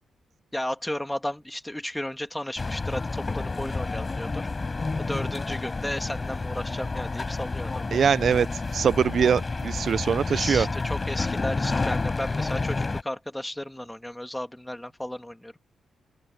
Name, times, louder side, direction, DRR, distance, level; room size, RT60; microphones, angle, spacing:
voice 1, 0.5-4.5 5.0-7.8 10.3-15.5, left 1 dB, 5° left, 2.1 m, -34 dB
sound 1, 2.6-13.0, left 3 dB, 25° left, 4.7 m, -30 dB
voice 2, 7.9-8.5 8.7-10.7, right 7 dB, 50° right, 0.3 m, -22 dB
open air
cardioid pair, 120°, 0 cm